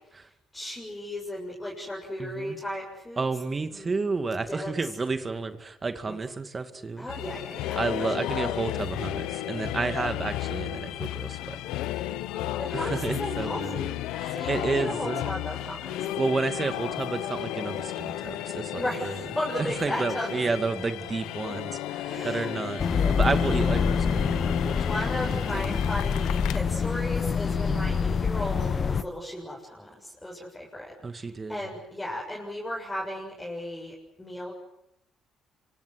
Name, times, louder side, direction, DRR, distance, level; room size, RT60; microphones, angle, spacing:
voice 1, 0.5-3.2 3.7-3.9 4.5-4.7 6.1-6.2 7.0-8.1 9.8-10.0 12.6-14.0 14.3-16.0 18.7-20.3 22.1-22.5 24.7-34.5, left 1 dB, 10° left, -3 dB, 7.2 m, -35 dB
voice 2, 2.2-2.6 3.2-7.1 7.7-11.6 12.7-15.2 16.2-19.2 19.6-24.7 25.5-25.8 27.7-28.1 31.0-31.6, right 4 dB, 30° right, 9 dB, 2.3 m, -31 dB
sound 1, 7.1-26.6, left 14 dB, 85° left, 1.1 m, -33 dB
sound 2, 22.8-29.0, left 6 dB, 40° left, 1.2 m, -26 dB
26.5 x 25.0 x 7.9 m, 0.82 s
cardioid pair, 90°, 0 cm